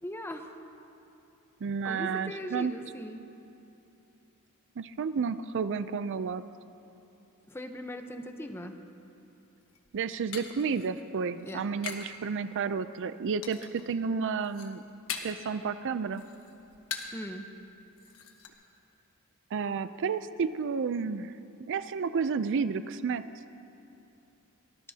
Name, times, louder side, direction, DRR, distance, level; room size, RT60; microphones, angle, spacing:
voice 1, 0.0-0.6 1.8-3.2 7.5-8.7 11.4-11.6 17.1-17.5, equal, 10° left, 5 dB, 0.8 m, -39 dB
voice 2, 1.6-2.7 4.8-6.4 9.9-14.8 15.2-16.3 19.5-21.3 21.7-23.2, right 5 dB, 55° right, 13 dB, 0.4 m, -31 dB
sound 1, 9.6-12.2 12.5-13.0 13.4-13.9 14.3-15.5 15.9-17.3 17.6-17.7 18.0-18.5, left 6 dB, 65° left, 1.4 m, -41 dB
24.0 x 19.5 x 2.8 m, 2.8 s
head